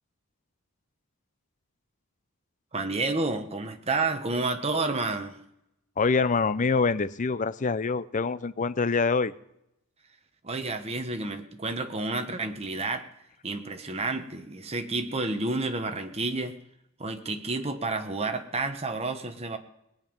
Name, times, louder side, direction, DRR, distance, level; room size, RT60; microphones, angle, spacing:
voice 1, 2.7-5.4 10.4-13.1 13.4-16.6 17.0-19.6, right 3 dB, 30° right, 6 dB, 1.2 m, -30 dB
voice 2, 6.0-9.3, left 4 dB, 35° left, 14 dB, 0.5 m, -25 dB
20.0 x 9.1 x 5.3 m, 0.82 s
head